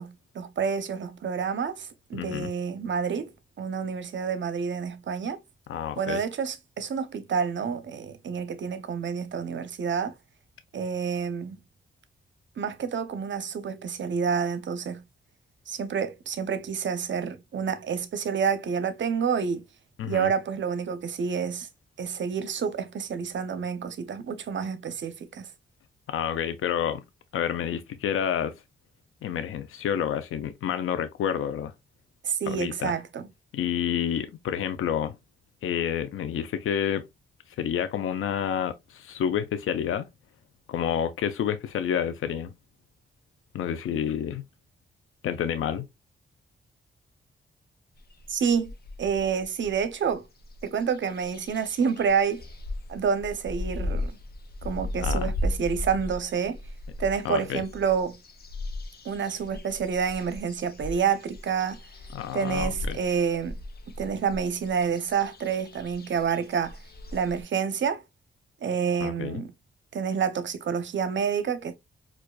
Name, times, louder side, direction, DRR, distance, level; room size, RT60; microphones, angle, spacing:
voice 1, 0.0-3.3 3.6-5.4 6.0-10.1 10.7-11.6 12.6-15.0 15.7-19.6 20.0-21.7 22.0-25.5 32.2-33.3 48.3-48.7 49.0-50.3 50.6-52.4 52.9-54.1 54.6-56.6 57.0-58.2 59.0-61.8 62.3-63.6 64.0-66.8 67.1-68.0 68.6-69.5 69.9-71.8, right 6 dB, 60° right, 0.6 m, -28 dB
voice 2, 2.1-2.5 5.7-6.2 20.0-20.3 26.1-27.0 27.3-28.5 29.2-31.7 32.5-33.0 33.5-35.1 35.6-37.0 37.6-40.1 40.7-42.5 43.5-44.4 45.2-45.9 55.0-55.3 57.2-57.6 62.1-63.0 69.0-69.4, left 9 dB, 85° left, 0.4 m, -29 dB
sound 1, 48.0-50.1 50.4-67.4, left 1 dB, 50° left, 0.7 m, -37 dB
4.6 x 2.3 x 2.2 m
cardioid pair, 75°, 21 cm